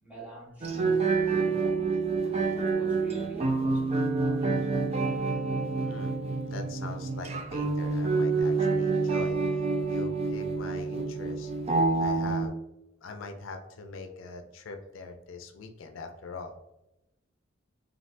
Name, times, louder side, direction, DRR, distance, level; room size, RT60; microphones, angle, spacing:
voice 1, 0.0-1.6 2.2-4.7, right 2 dB, 10° right, -5 dB, 1.0 m, -46 dB
sound 1, 0.6-12.5, right 3 dB, 35° right, 0.4 m, -28 dB
voice 2, 5.8-6.2 6.5-11.5 12.0-12.6 13.0-16.5, left 3 dB, 90° left, 5 dB, 0.4 m, -42 dB
3.2 x 2.5 x 2.5 m, 0.88 s
head